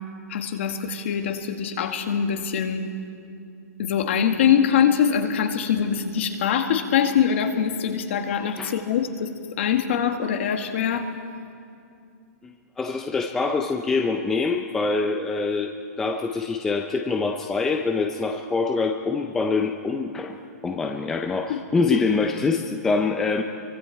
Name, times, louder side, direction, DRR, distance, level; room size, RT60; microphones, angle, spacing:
voice 1, 0.3-2.8 3.8-9.3 9.6-11.1 21.5-21.6 21.9-22.0, left 8 dB, 45° left, 6 dB, 1.8 m, -23 dB
voice 2, 12.4-15.7 16.0-20.4 20.6-23.4, left 4 dB, 5° left, 3 dB, 0.4 m, -25 dB
28.5 x 23.5 x 4.6 m, 2.4 s
hypercardioid pair, 175°, 9 cm